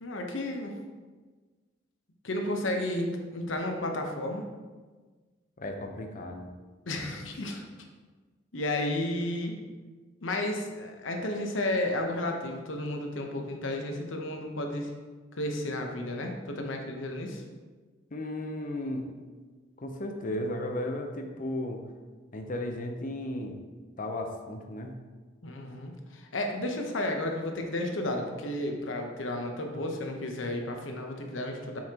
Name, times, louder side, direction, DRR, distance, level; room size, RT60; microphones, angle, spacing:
voice 1, 0.0-0.7 2.2-4.5 6.9-7.6 8.5-9.6 10.2-14.9 15.3-17.4 25.4-31.8, left 1 dB, 75° left, 2 dB, 0.9 m, -32 dB
voice 2, 5.6-6.5 18.1-19.1 19.8-21.8 22.3-23.6 24.0-24.9, left 1 dB, 45° left, 4 dB, 0.7 m, -35 dB
7.5 x 5.6 x 2.9 m, 1.4 s
head